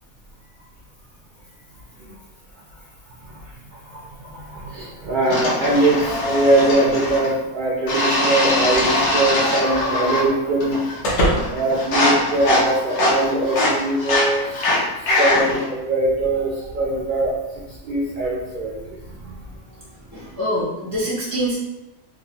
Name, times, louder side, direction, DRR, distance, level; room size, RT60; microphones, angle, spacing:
voice 1, 3.9-11.2 11.5-14.7 15.1-17.3 17.8-19.4, right 2 dB, 85° right, -4 dB, 0.4 m, -22 dB
sound 1, 5.3-7.3 7.9-10.3 10.6-11.1 11.4-15.7, left 1 dB, 90° left, 1.2 m, -22 dB
sound 2, 8.4-12.9, equal, 60° left, 0.9 m, -28 dB
voice 2, 20.1-21.5, equal, 30° left, -8 dB, 0.3 m, -24 dB
3.1 x 2.1 x 2.8 m, 1.0 s
omnidirectional pair, 1.5 m